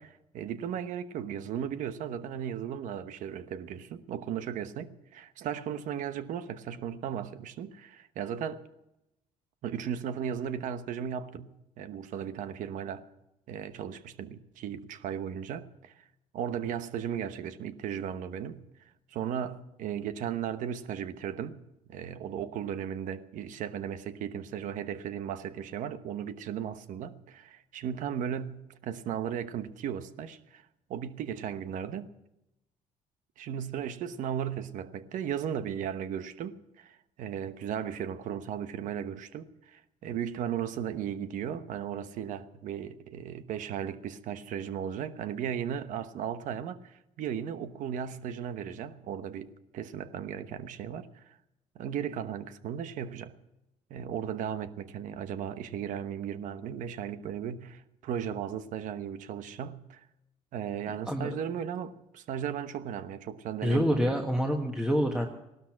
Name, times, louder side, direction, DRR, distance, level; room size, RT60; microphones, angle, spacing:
voice 1, 0.0-8.6 9.6-13.0 13.5-16.0 16.3-18.7 19.1-21.6 21.9-30.6 30.9-32.1 33.4-51.4 51.7-53.3 53.9-60.0 60.5-63.9, right 9 dB, 75° right, 1.0 m, -36 dB
voice 2, 63.6-65.3, equal, 5° right, 1.4 m, -27 dB
17.0 x 12.5 x 5.9 m
cardioid pair, 110°, 14 cm